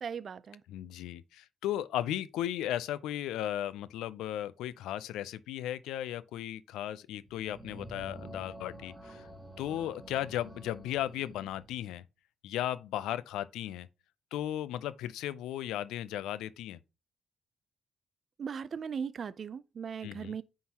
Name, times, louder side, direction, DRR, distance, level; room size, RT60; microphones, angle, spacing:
voice 1, 0.0-0.6 18.4-20.4, right 6 dB, 50° right, 0.4 m, -38 dB
voice 2, 0.7-9.3 9.6-12.0 12.4-13.9 14.3-16.8 20.0-20.3, left 12 dB, 90° left, 0.4 m, -36 dB
sound 1, 7.2-11.8, right 2 dB, 10° right, 1.6 m, -49 dB
9.4 x 3.8 x 2.9 m
cardioid pair, 90°, 0 cm